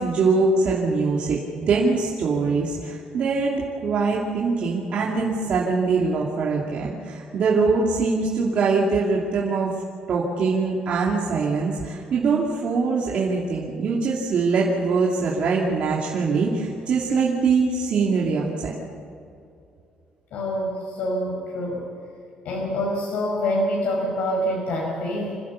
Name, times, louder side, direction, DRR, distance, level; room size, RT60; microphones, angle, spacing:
voice 1, 0.0-9.7 10.1-18.8, right 4 dB, 50° right, -3 dB, 2.6 m, -23 dB
voice 2, 20.3-21.9 22.5-25.4, equal, 75° left, -3 dB, 5.2 m, -26 dB
27.0 x 15.5 x 7.2 m, 2.5 s
cardioid pair, 180°, 3 cm